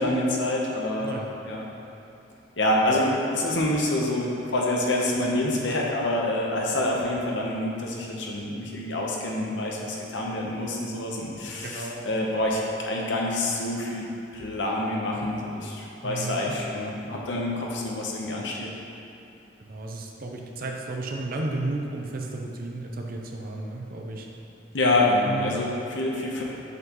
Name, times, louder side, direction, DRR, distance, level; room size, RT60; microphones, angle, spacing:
voice 1, 0.0-1.6 2.6-14.1 14.3-18.7 24.7-26.4, left 1 dB, 75° left, -2 dB, 1.0 m, -27 dB
voice 2, 1.0-1.3 11.6-12.1 16.0-16.6 19.7-24.3 25.3-25.6, right 2 dB, 50° right, 1 dB, 0.7 m, -33 dB
7.7 x 5.6 x 3.1 m, 2.8 s
head